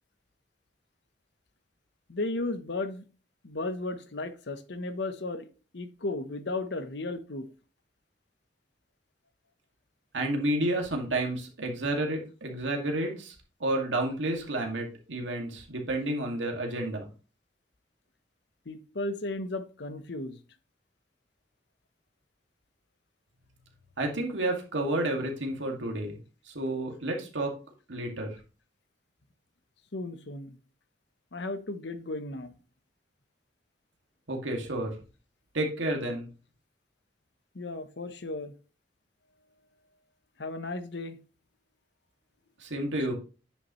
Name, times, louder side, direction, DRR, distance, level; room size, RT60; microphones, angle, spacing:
voice 1, 2.1-3.0 3.4-5.5 5.7-7.5 18.7-20.4 29.9-30.6 31.3-32.5 37.5-38.5 40.4-41.2 43.0-43.1, left 2 dB, 70° left, 0.9 m, -35 dB
voice 2, 10.1-13.3 13.6-17.1 24.0-26.2 26.5-27.6 27.9-28.4 34.3-34.9 35.5-36.3 42.6-43.1, right 1 dB, 85° right, 2.1 m, -30 dB
9.8 x 5.8 x 3.0 m
head